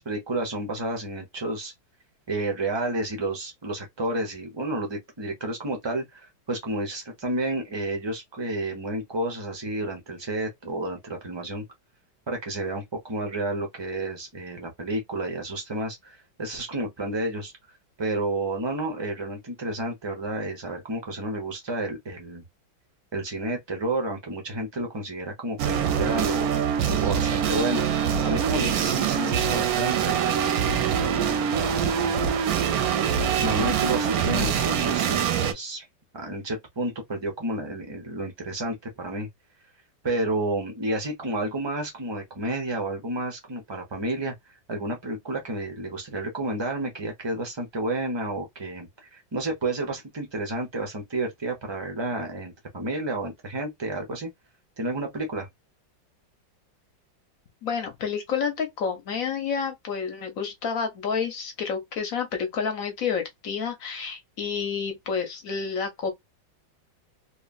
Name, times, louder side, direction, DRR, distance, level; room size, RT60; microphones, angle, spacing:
voice 1, 0.0-1.7 2.3-11.6 12.3-17.5 18.0-22.4 23.1-26.5 27.0-27.8 28.2-30.7 31.2-32.3 33.4-35.9 36.1-39.3 40.0-44.3 44.7-54.3 54.8-55.5, right 2 dB, 45° right, 0.3 m, -31 dB
sound 1, 25.6-35.5, right 8 dB, 70° right, 0.9 m, -24 dB
voice 2, 57.6-66.1, left 6 dB, 60° left, 0.9 m, -29 dB
3.1 x 2.3 x 2.3 m
omnidirectional pair, 2.0 m